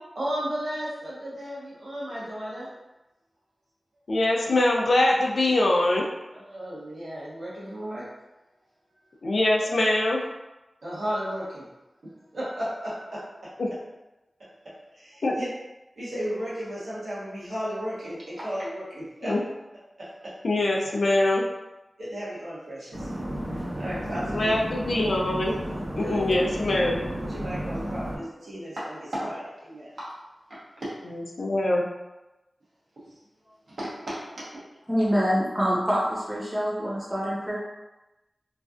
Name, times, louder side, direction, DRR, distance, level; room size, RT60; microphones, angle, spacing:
voice 1, 0.1-2.7 6.3-8.0 10.8-11.7 12.0-13.5 14.4-14.5 14.9-15.5 16.0-19.3 20.0-20.3 22.0-23.1 23.5-24.5 26.0-26.2 27.2-30.1 30.5-30.9 33.4-34.4 34.8-34.9, equal, 90° right, -9 dB, 1.1 m, -34 dB
voice 2, 4.1-6.1 9.2-10.2 13.6-13.7 15.2-15.4 19.2-19.4 20.4-21.4 24.3-25.5 25.9-27.0 31.4-31.9, left 1 dB, 80° left, -1 dB, 0.4 m, -23 dB
sound 1, 22.9-28.2, equal, 65° right, 0.7 m, -33 dB
voice 3, 34.9-37.6, equal, 10° right, -6 dB, 0.9 m, -25 dB
3.1 x 2.5 x 2.4 m, 1.0 s
wide cardioid pair, 55°, 0 cm